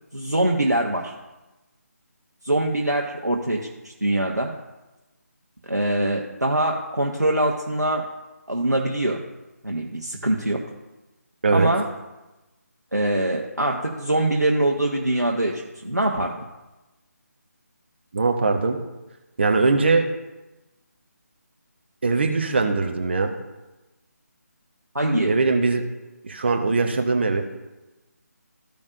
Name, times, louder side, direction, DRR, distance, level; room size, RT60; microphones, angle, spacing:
voice 1, 0.1-1.1 2.4-4.5 5.6-8.1 8.5-9.2 9.6-10.7 11.5-11.9 12.9-16.5 24.9-25.4, right 1 dB, 85° right, 0 dB, 1.2 m, -23 dB
voice 2, 18.1-18.8 19.4-20.1 22.0-23.3 25.2-25.8 26.2-27.4, right 3 dB, 40° right, 4 dB, 1.0 m, -21 dB
15.0 x 5.2 x 2.6 m, 1.1 s
figure-of-eight pair, 155°, 9 cm